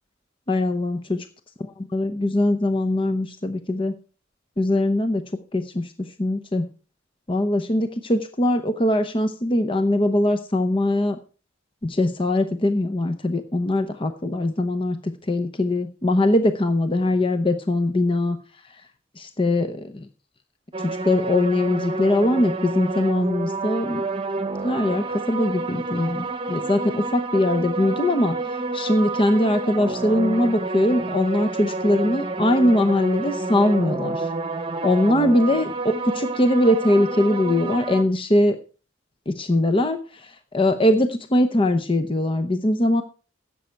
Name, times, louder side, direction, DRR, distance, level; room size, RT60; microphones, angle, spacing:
voice 1, 0.5-1.2 1.9-3.9 4.6-5.2 5.5-5.9 6.2-6.7 7.3-11.2 11.8-18.4 19.2-20.0 20.8-24.0 24.6-28.4 28.7-34.3 34.8-38.6 39.3-40.0 40.5-43.0, left 1 dB, 25° left, 8 dB, 0.8 m, -21 dB
sound 1, 20.7-38.0, right 3 dB, 30° right, 1.0 m, -29 dB
16.0 x 7.7 x 4.6 m, 0.37 s
head